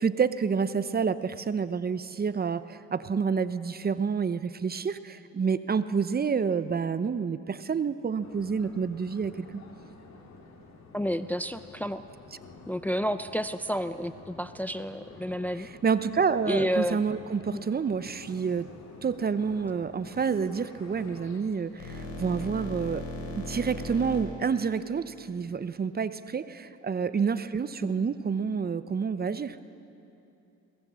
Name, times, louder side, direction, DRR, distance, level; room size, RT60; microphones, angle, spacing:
voice 1, 0.0-9.5 15.8-18.7 19.0-23.1 23.4-29.6, right 6 dB, 30° right, 13 dB, 0.7 m, -28 dB
sound 1, 8.2-21.4, left 3 dB, 60° left, 3.4 m, -49 dB
voice 2, 10.9-12.0 12.7-15.7 16.5-17.0 17.5-17.6 27.8-27.9, equal, 5° left, 11 dB, 0.5 m, -30 dB
sound 2, 18.1-18.4 20.1-20.4 21.2-24.2, left 1 dB, 85° left, 5.0 m, -38 dB
22.0 x 18.5 x 7.5 m, 2.8 s
cardioid pair, 90°, 30 cm